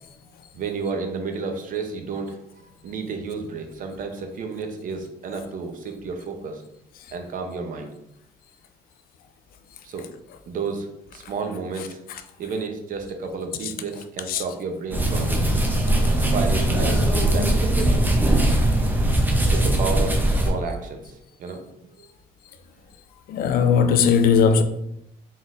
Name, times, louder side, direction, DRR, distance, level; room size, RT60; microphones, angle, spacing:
voice 1, 0.5-6.6 7.1-7.9 9.8-10.1 10.5-12.0 12.4-15.4 16.2-18.0 19.5-21.6 22.0-22.1, right 4 dB, 55° right, 0.7 m, -31 dB
sound 1, 14.9-20.5, right 1 dB, 10° right, 0.7 m, -20 dB
voice 2, 23.3-24.6, left 6 dB, 60° left, 0.4 m, -18 dB
3.9 x 3.9 x 2.5 m
cardioid pair, 110°, 17 cm